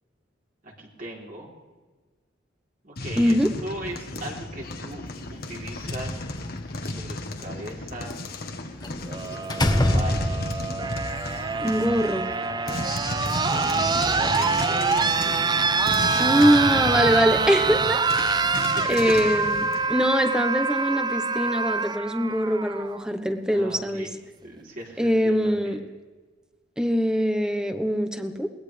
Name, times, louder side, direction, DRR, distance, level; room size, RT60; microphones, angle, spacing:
voice 1, 0.6-1.5 2.8-5.1 5.3-6.2 6.8-8.1 9.3-10.7 13.7-16.5 16.9-17.1 18.6-18.7 23.5-24.2 24.4-25.8, right 1 dB, 50° right, -2 dB, 3.6 m, -39 dB
sound 1, 3.0-19.9, left 2 dB, 55° left, 1.4 m, -34 dB
voice 2, 3.2-3.5 11.6-12.3 16.2-18.0 18.3-18.6 18.9-24.1 25.0-25.8 26.8-28.5, equal, 5° right, 7 dB, 1.1 m, -23 dB
Slam, 5.7-6.7 8.8-9.1 9.5-10.7, left 1 dB, 20° left, 1.2 m, -24 dB
sound 2, 9.1-23.0 24.3-24.4, right 4 dB, 25° right, 0.4 m, -25 dB
22.0 x 19.0 x 3.4 m, 1.3 s
head